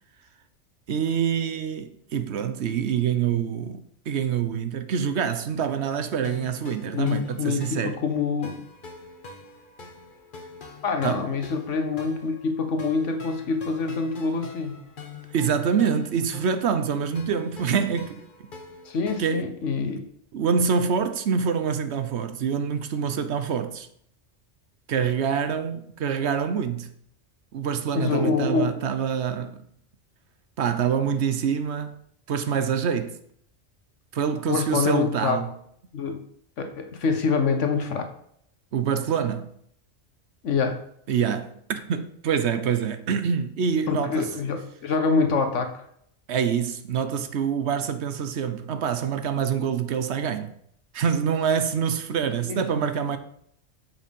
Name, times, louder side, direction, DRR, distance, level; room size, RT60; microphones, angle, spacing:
voice 1, 0.9-8.0 11.0-11.3 15.3-18.2 19.2-19.5 20.3-23.9 24.9-26.9 27.5-29.6 30.6-32.0 32.3-33.2 34.1-35.5 38.7-39.5 41.1-44.3 46.3-50.5 50.9-53.2, right 7 dB, 70° right, 1.0 m, -26 dB
sound 1, 6.2-19.2, left 4 dB, 45° left, 1.1 m, -44 dB
voice 2, 6.9-8.6 10.8-14.7 18.8-20.0 27.9-28.7 34.5-35.4 35.9-36.2 36.6-38.1 40.4-40.8 43.9-45.9 52.4-52.9, left 5 dB, 80° left, 1.5 m, -25 dB
7.2 x 5.8 x 5.3 m
omnidirectional pair, 1.2 m